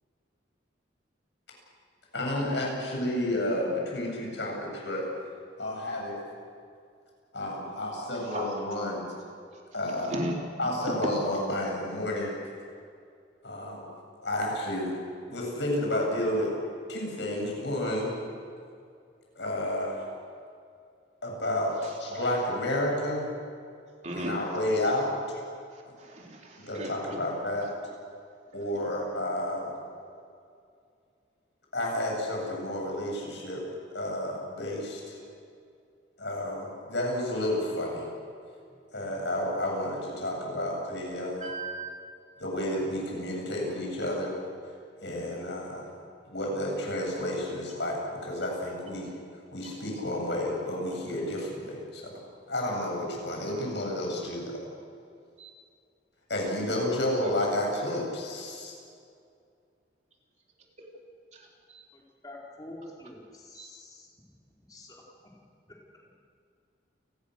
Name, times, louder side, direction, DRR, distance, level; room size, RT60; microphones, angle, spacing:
voice 1, 2.1-5.1 5.6-6.2 7.3-9.0 9.7-10.2 10.6-12.3 13.4-13.9 14.2-14.9 15.3-16.5 16.9-18.1 19.4-20.0 21.2-23.3 24.1-25.1 26.7-27.7 28.5-29.7 31.7-33.6 33.9-35.2 36.2-38.1 38.9-41.5 42.4-44.4 45.0-45.9 46.3-49.1 49.5-52.2 52.5-54.7 56.3-58.7, left 1 dB, 70° left, -1 dB, 7.9 m, -31 dB
voice 2, 8.3-8.8 9.9-10.4 10.9-11.1 22.1-22.3 24.0-24.4 25.7-27.2 28.7-28.9 41.4-41.9 55.4-55.5 57.2-57.5 60.8-60.9 61.3-61.4 61.7-61.8 63.5-63.7, right 1 dB, 40° right, -1 dB, 3.7 m, -36 dB
voice 3, 61.9-64.1 64.5-65.3, left 1 dB, 20° left, -3 dB, 4.3 m, -47 dB
29.5 x 20.0 x 6.6 m, 2.3 s
head